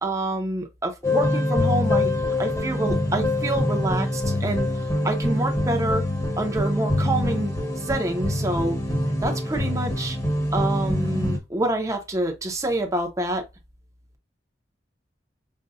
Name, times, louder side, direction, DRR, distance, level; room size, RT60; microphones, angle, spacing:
voice 1, 0.0-2.1 2.4-4.7 5.0-6.0 6.4-7.5 7.8-8.8 9.2-10.2 10.5-13.4, right 2 dB, 20° right, 0.8 m, -27 dB
sound 1, 1.0-11.4, left 1 dB, 20° left, 1.1 m, -25 dB
5.4 x 2.3 x 2.4 m
head